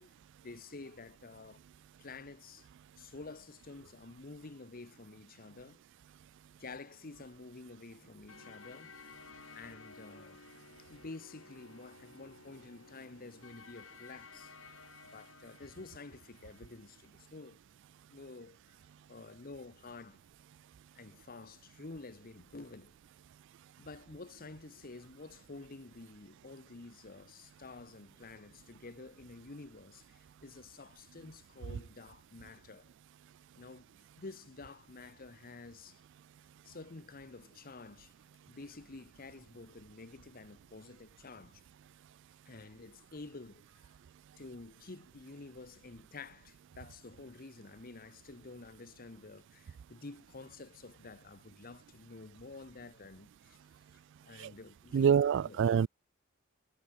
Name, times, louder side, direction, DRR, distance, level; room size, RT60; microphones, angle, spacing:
voice 1, 0.0-1.6 2.0-2.7 3.0-5.8 6.6-8.9 9.5-10.4 10.8-14.5 15.0-17.6 18.1-18.8 19.1-20.2 20.9-22.9 23.8-32.9 33.6-36.0 36.6-38.1 38.5-41.6 42.5-43.9 44.4-53.6 53.9-55.6, left 3 dB, 45° left, 1.0 m, -50 dB
sound 1, 8.3-17.1, left 4 dB, 70° left, 5.9 m, -55 dB
voice 2, 54.9-55.9, right 7 dB, 60° right, 0.3 m, -26 dB
head